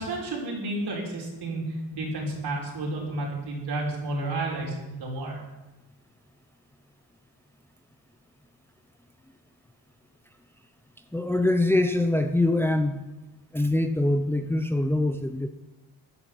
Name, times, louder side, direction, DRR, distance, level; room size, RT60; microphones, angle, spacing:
voice 1, 0.0-5.4, right 2 dB, 60° right, -2 dB, 5.8 m, -31 dB
voice 2, 11.1-13.0 13.5-15.5, left 1 dB, 5° left, 7 dB, 0.8 m, -24 dB
15.5 x 9.8 x 7.3 m, 1.0 s
cardioid pair, 100°, 45 cm